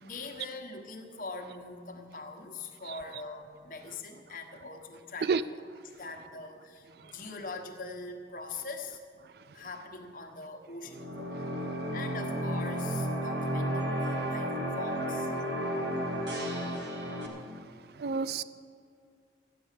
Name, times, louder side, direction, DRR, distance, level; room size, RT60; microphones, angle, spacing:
voice 1, 0.0-9.0 9.5-11.3 11.9-15.3, left 3 dB, 50° left, 1.3 m, -43 dB
sound 1, 10.8-17.3, right 1 dB, 85° right, 2.0 m, -32 dB
voice 2, 18.0-18.4, right 5 dB, 60° right, 0.4 m, -28 dB
14.0 x 9.5 x 6.7 m
head